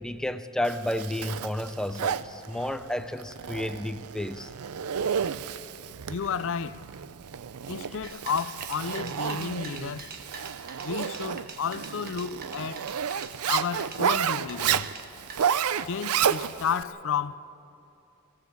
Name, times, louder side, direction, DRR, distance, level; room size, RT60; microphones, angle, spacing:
voice 1, 0.0-4.5 6.0-6.1, left 1 dB, 5° left, 0.6 m, -31 dB
Zipper (clothing), 0.7-16.8, right 8 dB, 80° right, 0.5 m, -31 dB
voice 2, 6.1-6.8 7.7-10.1 10.4-10.5 10.8-12.9 13.5-14.9 15.9-17.4, left 6 dB, 60° left, 0.5 m, -32 dB
sound 1, 8.0-15.4, right 4 dB, 45° right, 1.3 m, -44 dB
22.0 x 16.5 x 7.3 m
head